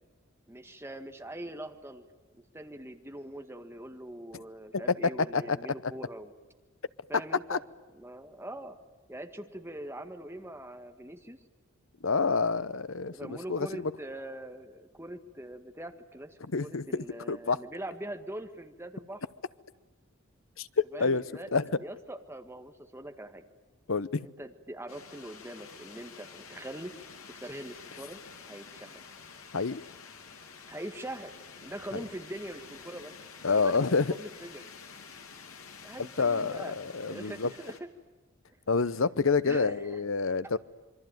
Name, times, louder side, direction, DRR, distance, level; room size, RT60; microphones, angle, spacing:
voice 1, 0.5-2.1 2.3-6.3 7.1-7.6 7.9-8.8 9.1-11.4 13.1-19.2 20.9-21.5 21.8-23.4 24.2-26.9 27.3-28.2 28.5-29.0 30.7-31.3 31.6-33.1 33.5-33.8 34.1-34.7 35.8-37.8 39.5-40.1, right 1 dB, 10° right, 1.8 m, -42 dB
voice 2, 12.0-13.7 16.5-17.6 20.6-21.2 21.5-21.7 23.9-24.3 29.5-29.8 31.9-32.0 33.4-34.1 36.2-37.5 38.7-40.6, left 4 dB, 65° left, 0.9 m, -28 dB
sound 1, 24.9-37.8, left 5 dB, 85° left, 2.8 m, -49 dB
27.0 x 23.5 x 9.3 m
head